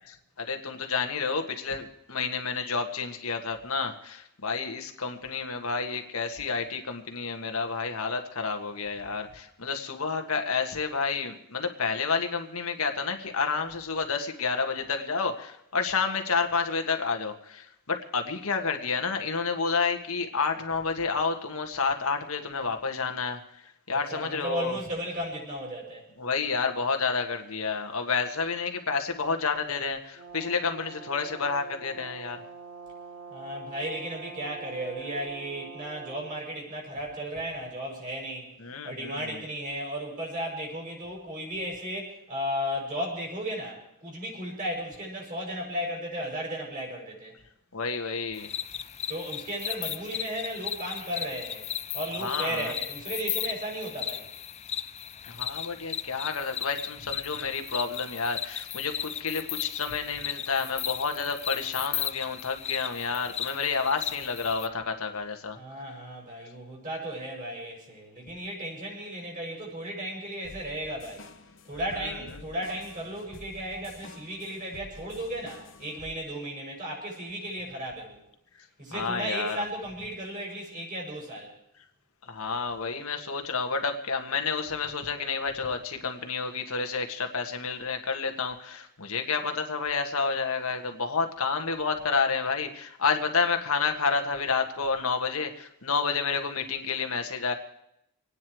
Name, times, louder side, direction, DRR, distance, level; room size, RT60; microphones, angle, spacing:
voice 1, 0.4-24.8 26.2-32.4 38.6-39.4 47.7-48.5 52.2-52.8 55.3-65.6 72.0-72.1 78.9-79.6 82.2-97.5, left 5 dB, 85° left, 5 dB, 1.6 m, -30 dB
voice 2, 23.9-26.0 33.3-38.5 38.8-47.3 49.1-51.7 51.9-54.2 65.6-71.3 71.7-78.2 78.8-81.5, equal, 40° right, -1 dB, 6.2 m, -35 dB
Brass instrument, 30.1-36.4, right 5 dB, 75° right, 3.8 m, -45 dB
sound 1, 48.3-64.7, left 9 dB, 30° left, 0.5 m, -36 dB
sound 2, 70.4-76.2, left 3 dB, 60° left, 1.1 m, -49 dB
25.5 x 9.7 x 4.7 m, 0.80 s
head